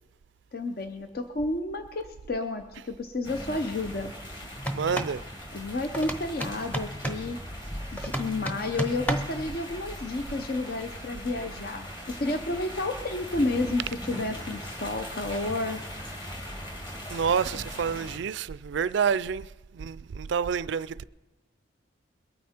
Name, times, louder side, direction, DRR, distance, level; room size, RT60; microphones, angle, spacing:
voice 1, 0.5-4.1 5.5-7.4 7.9-11.9 12.2-15.8, left 2 dB, 50° left, 0.7 m, -31 dB
sound 1, 3.2-18.2, equal, 25° left, 2.2 m, -40 dB
sound 2, 4.6-5.2 5.9-7.3 8.0-9.4, right 1 dB, 5° left, 0.9 m, -32 dB
voice 2, 4.7-5.2 17.1-19.5 19.7-21.0, right 6 dB, 65° right, 0.3 m, -28 dB
22.0 x 9.4 x 4.4 m
head